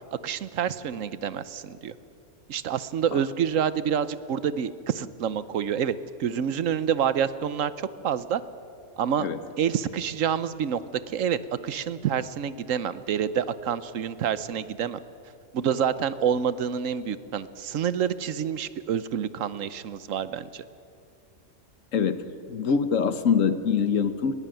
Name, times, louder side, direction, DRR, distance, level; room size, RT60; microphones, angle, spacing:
voice 1, 0.2-1.9 2.5-8.4 9.0-9.3 9.6-10.8 11.1-11.4 11.6-15.0 15.5-20.6, right 8 dB, 80° right, 15 dB, 1.2 m, -27 dB
voice 2, 21.9-24.3, left 6 dB, 80° left, 12 dB, 1.4 m, -24 dB
20.5 x 17.5 x 9.0 m, 2.7 s
omnidirectional pair, 1.3 m